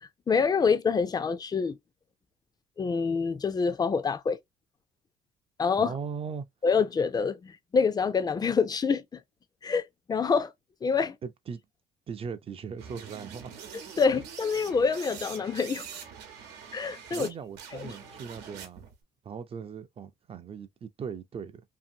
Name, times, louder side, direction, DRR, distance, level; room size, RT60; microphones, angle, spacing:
voice 1, 0.0-1.8 2.8-4.4 5.6-6.0 6.6-9.2 9.6-10.5 10.8-11.2 14.0-15.9 16.7-17.3 17.7-18.0, left 5 dB, 25° left, 0.4 m, -26 dB
voice 2, 5.8-6.5 11.2-11.6 12.1-13.5 17.1-18.9 19.2-21.6, right 6 dB, 35° right, 0.5 m, -39 dB
sound 1, 12.8-17.3 17.5-18.9, right 7 dB, 90° right, 0.9 m, -44 dB
2.7 x 2.5 x 2.6 m
cardioid pair, 110°, 17 cm